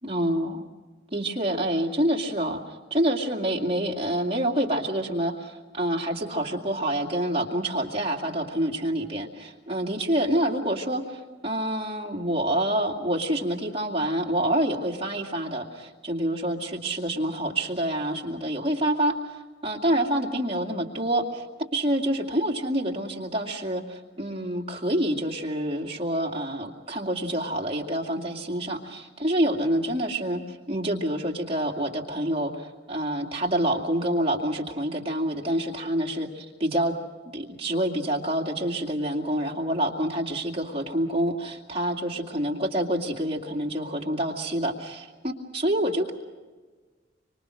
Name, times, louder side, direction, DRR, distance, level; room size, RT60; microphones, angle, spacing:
voice 1, 0.0-0.6 1.1-2.6 2.9-21.4 21.7-36.9 37.3-46.1, right 1 dB, 30° right, 0 dB, 2.4 m, -27 dB
25.5 x 25.0 x 6.4 m, 1.4 s
head